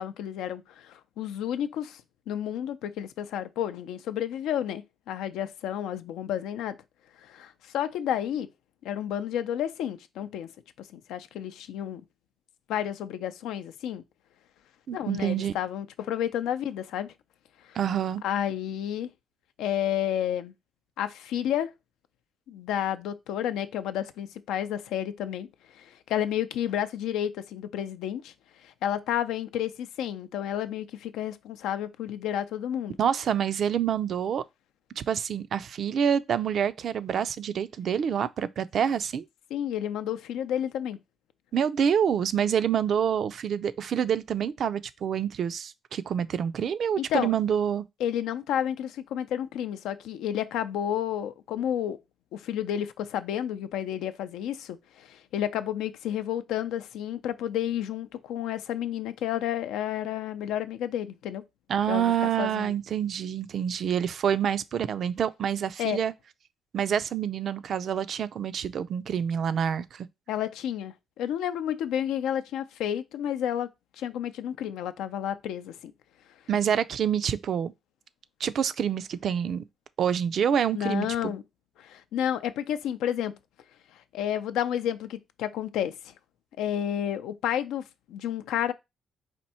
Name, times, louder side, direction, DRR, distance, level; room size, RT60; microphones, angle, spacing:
voice 1, 0.0-2.0 2.3-6.8 7.2-8.5 8.8-10.5 10.9-12.0 12.7-14.0 14.9-17.1 17.7-17.8 18.2-19.1 19.6-20.5 21.0-21.7 22.5-25.5 25.7-28.3 28.6-33.0 39.5-41.0 47.0-47.3 48.0-52.0 52.3-61.4 61.9-62.7 65.8-66.0 70.3-73.7 74.0-75.9 80.7-81.4 81.8-83.4 84.1-86.1 86.6-88.7, left 10 dB, 90° left, 0.4 m, -31 dB
voice 2, 14.9-15.5 17.7-18.2 33.0-34.4 35.0-39.3 41.5-47.9 61.7-66.1 66.7-70.1 76.5-77.7 78.4-79.6 80.0-81.3, right 8 dB, 60° right, 0.4 m, -27 dB
4.3 x 2.6 x 4.2 m
cardioid pair, 90°, 0 cm